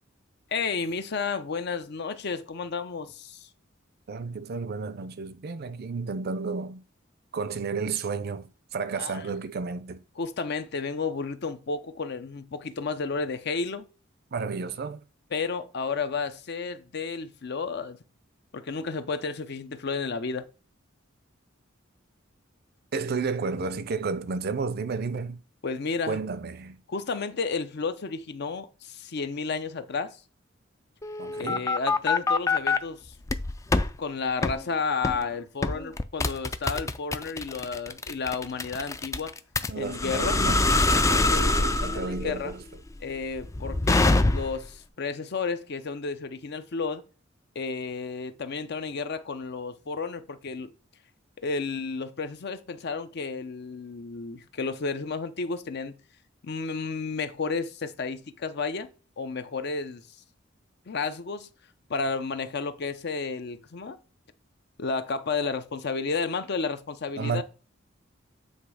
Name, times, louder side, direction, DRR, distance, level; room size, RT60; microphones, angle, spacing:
voice 1, 0.5-3.5 9.0-9.2 10.2-13.8 15.3-18.0 18.5-20.5 25.6-26.2 26.9-30.2 31.4-33.1 34.0-39.3 39.8-40.4 41.3-42.5 43.0-47.0 47.6-50.7 51.4-56.0 56.4-58.9 59.2-60.0 60.9-61.5 61.9-64.0 64.8-67.4, left 4 dB, 55° left, 0.6 m, -32 dB
voice 2, 4.1-6.8 7.3-10.0 14.3-15.0 22.9-25.4 26.1-26.8 31.2-31.7 39.7-42.6 67.2-67.4, right 4 dB, 50° right, 0.5 m, -32 dB
sound 1, 31.0-32.8 33.3-33.9 34.4-34.6 35.0-35.3 35.6-44.7, left 2 dB, 15° left, 0.3 m, -25 dB
8.0 x 3.1 x 4.8 m
head